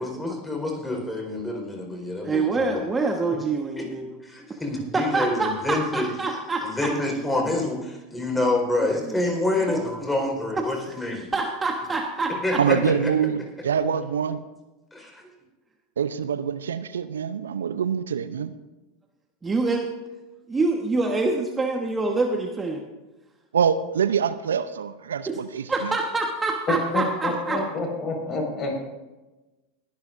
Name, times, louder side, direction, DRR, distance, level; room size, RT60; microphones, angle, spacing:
voice 1, 0.0-2.8 3.8-3.9 4.2-11.3 12.4-13.1 14.9-15.3, left 2 dB, 10° left, 1 dB, 4.3 m, -27 dB
voice 2, 2.2-4.2 4.9-6.9 9.1-9.2 9.7-9.8 10.5-10.6 11.3-12.6 19.4-19.9 20.5-22.8 25.3-25.4 25.7-27.6, right 3 dB, 20° right, 3 dB, 1.2 m, -26 dB
voice 3, 12.6-14.4 16.0-18.5 23.5-26.0, right 7 dB, 80° right, 13 dB, 0.5 m, -25 dB
voice 4, 26.7-28.8, left 2 dB, 35° left, 2 dB, 4.9 m, -27 dB
21.5 x 11.5 x 2.6 m, 1.1 s
hypercardioid pair, 85°, 0 cm